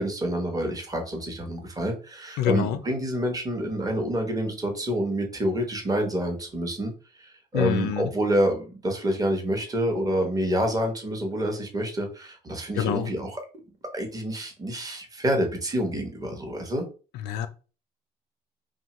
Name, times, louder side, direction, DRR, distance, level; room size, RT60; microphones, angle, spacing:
voice 1, 0.0-13.4 13.9-16.9, right 1 dB, 20° right, 4 dB, 0.8 m, -28 dB
voice 2, 2.4-2.8 7.5-8.1 12.8-13.1 17.2-17.5, left 10 dB, 80° left, 10 dB, 0.4 m, -26 dB
2.9 x 2.2 x 2.9 m, 0.35 s
cardioid pair, 110°, 17 cm